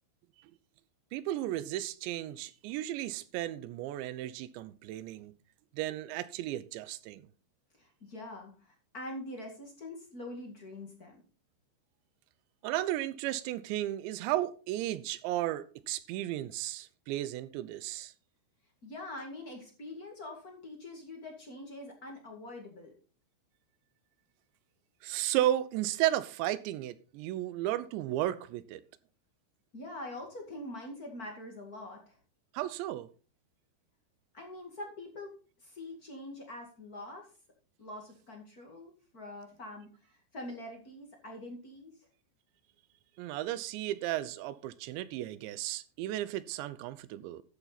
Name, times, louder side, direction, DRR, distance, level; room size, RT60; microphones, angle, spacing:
voice 1, 1.1-5.3 5.7-7.2 12.6-18.1 25.0-28.8 32.5-33.1 43.2-47.4, right 14 dB, 85° right, 3.0 m, -34 dB
voice 2, 7.7-11.2 18.8-22.9 29.7-32.2 34.3-35.3 35.6-37.3 37.8-41.9, left 1 dB, 40° left, 1.2 m, -44 dB
13.0 x 7.2 x 4.1 m
omnidirectional pair, 5.1 m